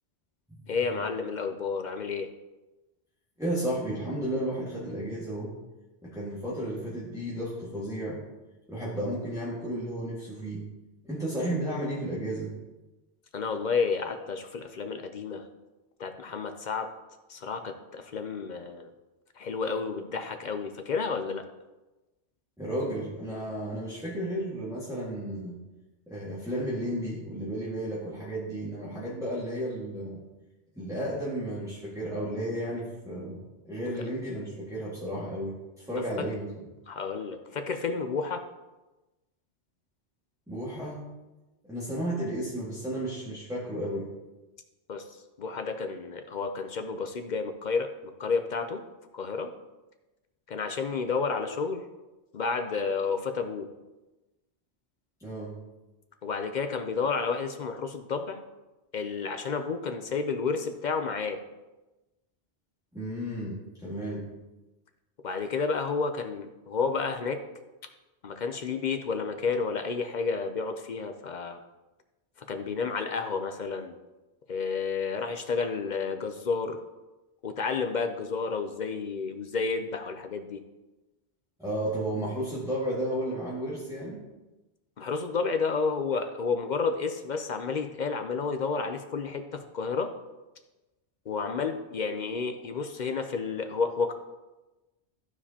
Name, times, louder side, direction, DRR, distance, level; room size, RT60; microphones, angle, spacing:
voice 1, 0.7-2.3 13.3-15.4 16.0-16.9 17.3-18.9 19.4-21.4 36.9-38.5 44.9-45.1 45.4-48.8 49.1-49.5 50.5-51.8 52.3-53.7 56.2-58.4 58.9-61.4 65.2-67.4 68.2-71.6 72.5-74.0 74.5-76.8 77.4-80.6 85.0-90.1 91.3-94.1, left 5 dB, 55° left, 7 dB, 0.6 m, -31 dB
voice 2, 3.4-5.5 6.0-8.2 8.7-10.6 11.0-12.5 22.6-25.6 26.1-30.2 30.7-33.4 33.6-36.5 40.5-41.0 41.6-44.1 55.2-55.6 62.9-64.3 81.6-84.2, right 1 dB, 5° right, -8 dB, 1.7 m, -33 dB
14.0 x 4.7 x 2.8 m, 1.1 s
omnidirectional pair, 1.1 m